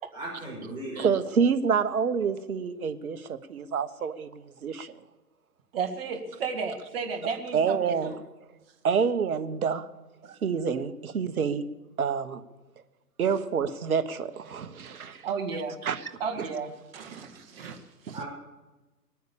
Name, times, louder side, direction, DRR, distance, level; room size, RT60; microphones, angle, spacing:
voice 1, 0.1-1.1 18.1-18.3, right 1 dB, 10° right, -7 dB, 6.3 m, -37 dB
voice 2, 1.0-4.9 7.5-8.1 8.8-9.9 10.3-11.6 12.0-12.4 13.2-15.2 15.8-16.1 16.4-16.5 18.1-18.2, right 6 dB, 60° right, 10 dB, 1.3 m, -27 dB
voice 3, 5.7-8.2 15.2-15.8 16.2-17.8 18.0-18.2, right 5 dB, 35° right, 3 dB, 1.9 m, -33 dB
20.5 x 9.4 x 7.0 m, 1.1 s
hypercardioid pair, 145°, 48 cm